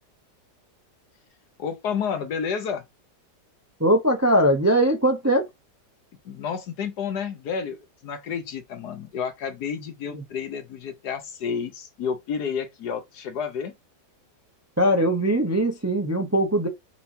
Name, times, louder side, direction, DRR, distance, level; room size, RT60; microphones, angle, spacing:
voice 1, 1.6-2.8 6.2-13.7, left 6 dB, 70° left, 1.4 m, -30 dB
voice 2, 3.8-5.4 14.8-16.7, right 1 dB, 15° right, 0.5 m, -20 dB
5.6 x 3.1 x 2.7 m
omnidirectional pair, 1.9 m